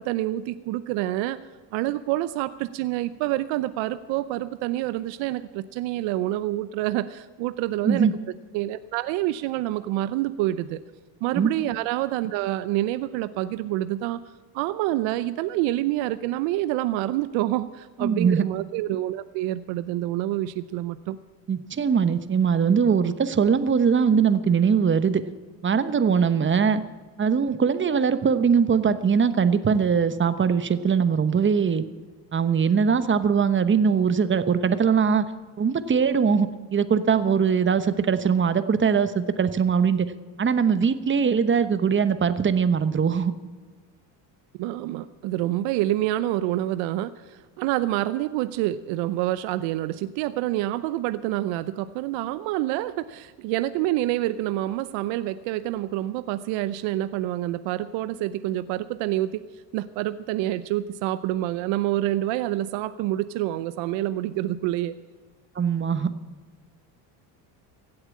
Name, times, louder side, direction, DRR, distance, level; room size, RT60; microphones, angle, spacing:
voice 1, 0.0-1.4 1.7-8.1 8.5-10.8 11.2-14.2 14.5-21.2 44.6-59.4 59.7-64.9, right 15 dB, 65° right, 14 dB, 0.7 m, -27 dB
voice 2, 18.0-18.5 21.5-25.2 25.6-26.8 27.2-31.8 32.3-35.2 35.6-40.1 40.4-43.3 65.6-66.1, right 6 dB, 25° right, 12 dB, 1.0 m, -21 dB
16.5 x 7.9 x 8.5 m, 1.4 s
hypercardioid pair, 80°, 50 cm